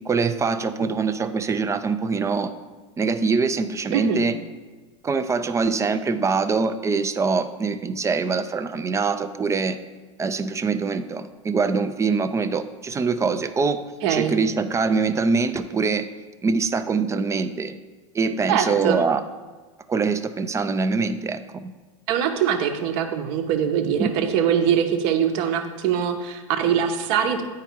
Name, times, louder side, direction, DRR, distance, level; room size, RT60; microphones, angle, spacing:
voice 1, 0.1-2.5 3.0-4.4 5.0-9.8 10.2-13.8 14.1-16.1 16.4-17.8 18.1-19.2 19.9-21.7 24.0-24.3, right 4 dB, 20° right, 10 dB, 0.4 m, -24 dB
voice 2, 3.9-4.2 14.0-14.3 18.5-19.0 22.1-27.4, right 8 dB, 55° right, 6 dB, 0.9 m, -22 dB
9.1 x 4.7 x 4.5 m, 1.3 s
hypercardioid pair, 85°, 16 cm